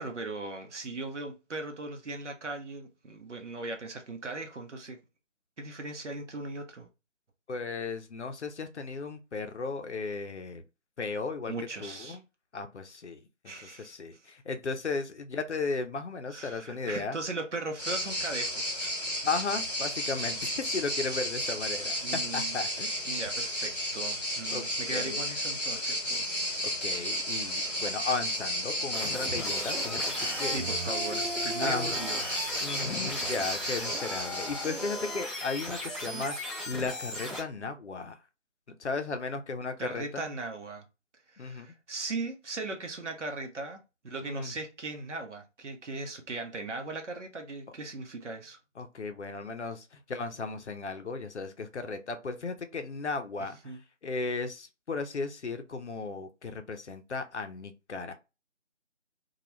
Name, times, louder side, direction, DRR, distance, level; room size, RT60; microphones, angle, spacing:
voice 1, 0.0-5.0 5.6-6.9 11.5-12.2 13.5-13.9 16.3-19.1 22.0-22.6 23.1-26.3 30.4-32.2 36.1-36.2 39.8-40.8 41.3-48.6 53.6-53.8, right 3 dB, 70° right, 0.8 m, -38 dB
voice 2, 7.5-10.6 11.0-11.5 11.8-12.2 12.5-13.2 13.6-17.2 19.3-22.0 22.3-23.0 24.5-25.2 26.8-30.6 31.6-31.9 32.6-38.2 38.7-40.3 41.4-41.7 44.2-44.5 48.8-58.1, left 4 dB, 65° left, 0.5 m, -35 dB
sound 1, 17.8-35.2, equal, 35° left, 0.9 m, -33 dB
sound 2, 28.9-37.4, left 1 dB, 25° right, 0.9 m, -37 dB
2.3 x 2.1 x 2.9 m
figure-of-eight pair, 165°, 38 cm